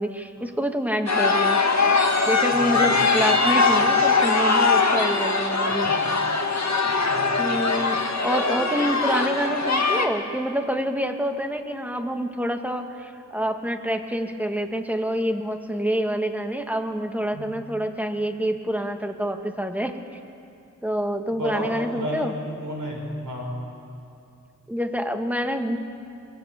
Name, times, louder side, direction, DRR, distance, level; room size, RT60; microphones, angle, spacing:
voice 1, 0.0-1.6 2.2-6.0 7.4-20.0 20.8-22.3 24.7-25.8, equal, 5° right, 5 dB, 1.8 m, -27 dB
sound 1, 1.1-10.1, left 4 dB, 60° left, 1.9 m, -21 dB
voice 2, 2.5-3.2 3.7-3.8 5.7-6.0 6.9-7.5 8.2-8.7 17.3-17.4 21.3-23.6, equal, 85° right, 0 dB, 5.2 m, -33 dB
23.5 x 22.0 x 8.3 m, 2.6 s
wide cardioid pair, 50°, 32 cm